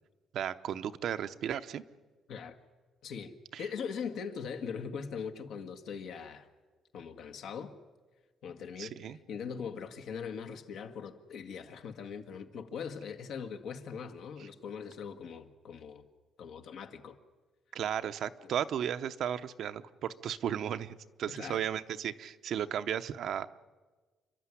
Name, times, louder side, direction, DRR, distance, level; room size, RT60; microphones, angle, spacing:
voice 1, 0.3-1.8 3.5-3.7 8.8-9.2 17.7-23.5, right 9 dB, 65° right, 10 dB, 0.8 m, -35 dB
voice 2, 3.0-6.5 6.9-7.7 8.4-16.0 16.4-17.2 18.4-18.5 21.3-21.6, left 6 dB, 70° left, 7 dB, 1.7 m, -41 dB
28.5 x 12.5 x 9.9 m, 1.3 s
cardioid pair, 140°, 0 cm